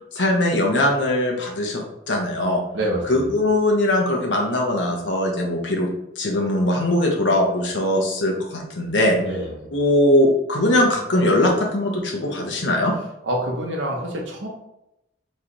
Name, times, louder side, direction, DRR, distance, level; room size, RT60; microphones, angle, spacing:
voice 1, 0.1-2.6 3.1-5.9 6.2-9.2 9.7-12.9, left 1 dB, 80° left, 1 dB, 1.0 m, -20 dB
voice 2, 2.7-3.3 9.2-9.7 13.2-14.5, right 1 dB, 85° right, 0 dB, 1.0 m, -27 dB
3.3 x 3.1 x 3.9 m, 0.86 s
head